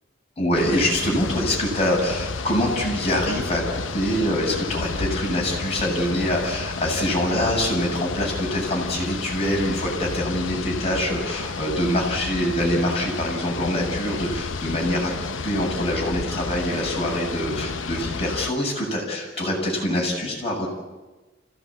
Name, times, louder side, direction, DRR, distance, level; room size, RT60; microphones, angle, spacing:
voice 1, 0.4-20.7, left 1 dB, 35° left, -2 dB, 7.3 m, -25 dB
sound 1, 0.5-18.5, left 4 dB, 90° left, 0.9 m, -31 dB
25.0 x 17.0 x 8.7 m, 1.2 s
head